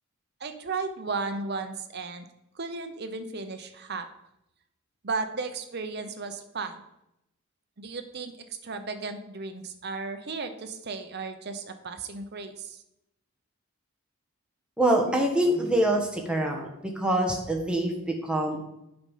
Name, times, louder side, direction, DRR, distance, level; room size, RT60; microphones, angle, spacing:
voice 1, 0.4-2.3 2.5-4.1 5.0-6.8 7.8-8.3 8.6-12.8, right 4 dB, 50° right, 8 dB, 0.8 m, -34 dB
voice 2, 14.8-16.7 16.9-18.6, right 1 dB, 5° right, 0 dB, 1.3 m, -25 dB
7.9 x 5.3 x 5.7 m, 0.85 s
head